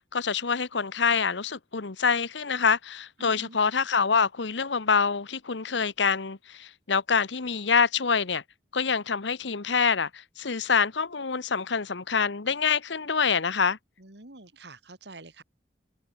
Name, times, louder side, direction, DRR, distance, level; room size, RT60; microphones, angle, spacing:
voice 1, 0.0-8.4 8.7-13.8, left 5 dB, 90° left, 1.1 m, -26 dB
voice 2, 3.2-3.6 14.0-15.4, right 2 dB, 75° right, 2.6 m, -47 dB
head